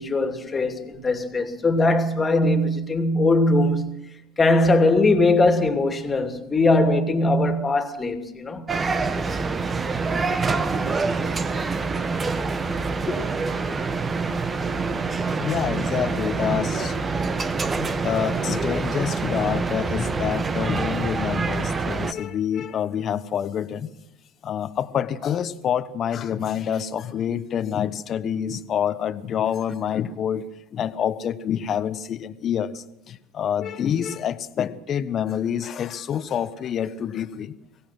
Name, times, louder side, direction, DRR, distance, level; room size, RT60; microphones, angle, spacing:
voice 1, 0.0-8.7 11.1-11.2 13.1-13.2, left 2 dB, 25° left, 2.8 m, -21 dB
sound 1, 8.7-22.1, right 4 dB, 25° right, 1.5 m, -26 dB
voice 2, 15.4-17.0 17.6-23.9 24.4-30.4 30.7-37.5, left 9 dB, 40° left, 1.3 m, -27 dB
23.5 x 18.0 x 6.1 m
hypercardioid pair, 75°, 0 cm